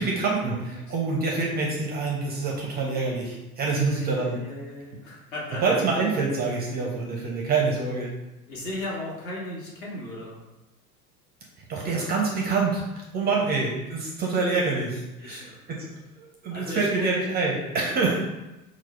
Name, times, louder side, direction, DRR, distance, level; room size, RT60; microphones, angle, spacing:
voice 1, 0.0-4.4 5.6-8.1 11.7-15.9 16.2-18.2, right 4 dB, 20° right, -2 dB, 0.6 m, -26 dB
voice 2, 3.7-5.9 8.5-10.4 13.3-13.6 15.2-15.6 16.5-17.1 18.0-18.2, left 1 dB, 60° left, -3 dB, 1.4 m, -36 dB
4.5 x 2.0 x 4.3 m, 0.99 s
figure-of-eight pair, 75°, 47 cm